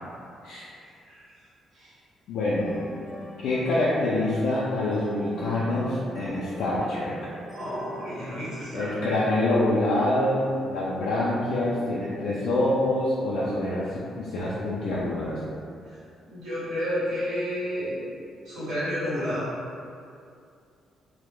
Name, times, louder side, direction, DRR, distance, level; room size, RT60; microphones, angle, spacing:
voice 1, 0.8-1.2 1.7-1.9 7.5-9.1 15.9-16.0 16.2-18.0 18.4-19.5, equal, 90° right, -11 dB, 1.0 m, -31 dB
voice 2, 2.3-2.8 3.4-7.1 8.7-15.4, left 1 dB, 80° left, -8 dB, 0.3 m, -26 dB
sound 1, 2.6-8.6, equal, ahead, 1.0 m, -42 dB
2.1 x 2.0 x 3.0 m, 2.4 s
cardioid pair, 90°, 0 cm